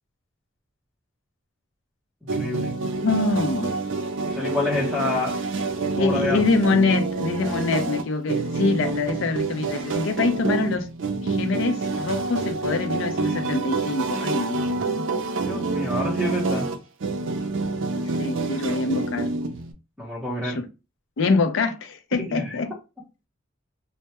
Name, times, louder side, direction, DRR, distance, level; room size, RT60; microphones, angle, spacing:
voice 1, 2.3-2.7 4.2-5.4 6.0-6.4 15.4-16.7 20.0-20.6 22.3-22.6, left 2 dB, 5° right, 0.7 m, -28 dB
sound 1, 2.3-19.7, right 3 dB, 70° right, 0.4 m, -27 dB
voice 2, 3.0-3.8 6.0-10.9 11.2-15.1 18.0-19.3 20.4-20.7 21.2-22.7, left 3 dB, 75° left, 0.4 m, -25 dB
2.2 x 2.1 x 2.8 m
head